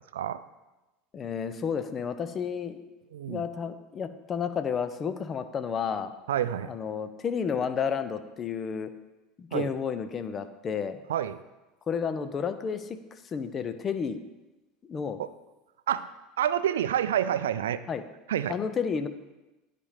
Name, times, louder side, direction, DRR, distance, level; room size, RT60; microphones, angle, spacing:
voice 1, 1.1-2.8 3.3-6.1 6.6-8.9 9.4-11.0 11.9-14.2 14.8-15.2 17.9-18.0 18.5-19.1, left 6 dB, 35° left, 11 dB, 0.7 m, -31 dB
voice 2, 3.1-3.5 6.3-6.7 9.5-9.7 11.1-11.4 15.2-15.3 15.9-16.1 16.4-17.8 18.3-18.6, right 10 dB, 75° right, 13 dB, 0.4 m, -28 dB
10.0 x 4.3 x 5.0 m, 1.0 s
hypercardioid pair, 80°, 0 cm